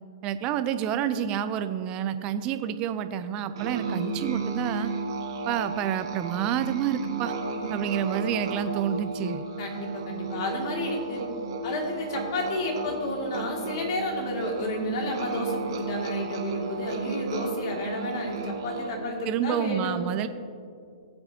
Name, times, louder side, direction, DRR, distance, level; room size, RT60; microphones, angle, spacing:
voice 1, 0.2-4.9 5.5-7.3 7.7-9.4 19.3-20.3, right 9 dB, 30° right, 11 dB, 0.6 m, -28 dB
Musical instrument, 3.6-19.1, right 3 dB, 60° right, 2.0 m, -34 dB
voice 2, 7.5-7.8 9.6-11.3 11.6-20.0, left 1 dB, 50° left, 0 dB, 2.5 m, -31 dB
18.5 x 7.8 x 2.9 m, 2.4 s
hypercardioid pair, 120°, 3 cm